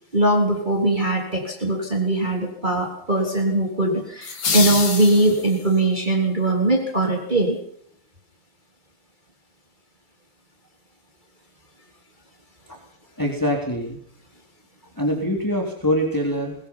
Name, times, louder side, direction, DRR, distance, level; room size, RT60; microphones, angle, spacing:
voice 1, 0.1-7.6, right 2 dB, 20° right, 2 dB, 3.7 m, -21 dB
sound 1, 4.2-5.8, left 5 dB, 75° left, 3.7 m, -26 dB
voice 2, 13.2-14.0 15.0-16.6, equal, 10° left, 0 dB, 3.8 m, -24 dB
23.5 x 21.0 x 5.7 m, 0.65 s
omnidirectional pair, 2.3 m